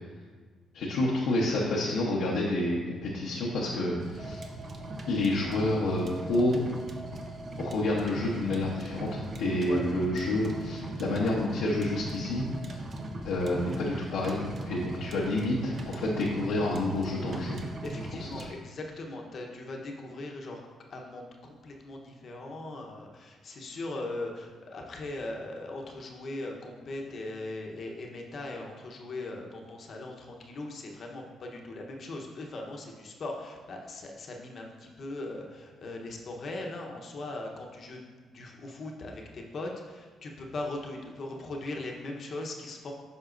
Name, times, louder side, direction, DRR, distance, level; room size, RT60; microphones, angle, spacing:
voice 1, 0.7-4.4 5.1-6.6 7.6-12.4 13.2-17.6 18.2-18.4, left 1 dB, 85° left, -6 dB, 0.9 m, -29 dB
sound 1, 4.0-18.5, right 1 dB, 45° right, 0.7 m, -39 dB
voice 2, 17.5-20.6 20.9-38.0 38.3-42.9, left 2 dB, 50° left, 1 dB, 0.9 m, -39 dB
8.0 x 5.4 x 2.6 m, 1.5 s
cardioid pair, 90°, 0 cm